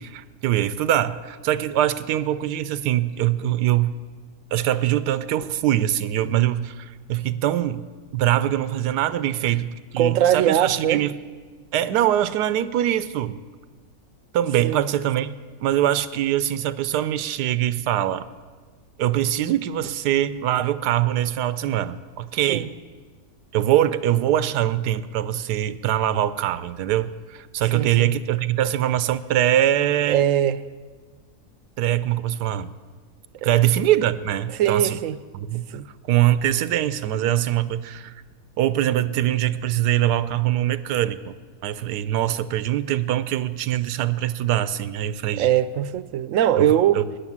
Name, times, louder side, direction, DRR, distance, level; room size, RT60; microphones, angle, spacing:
voice 1, 0.0-3.9 4.5-7.9 8.1-11.1 11.7-13.4 14.3-15.3 15.6-18.3 19.0-22.7 23.5-30.3 31.8-32.7 33.4-35.0 35.3-35.6 36.0-38.2 38.6-41.3 41.6-45.5 46.6-47.0, right 12 dB, 90° right, 1.2 m, -23 dB
voice 2, 10.0-11.0 14.6-14.8 22.5-22.7 27.7-28.1 30.1-30.7 33.4-33.5 34.6-35.2 35.7-35.9 45.4-47.1, right 11 dB, 65° right, 0.9 m, -21 dB
17.0 x 10.5 x 7.3 m
omnidirectional pair, 1.7 m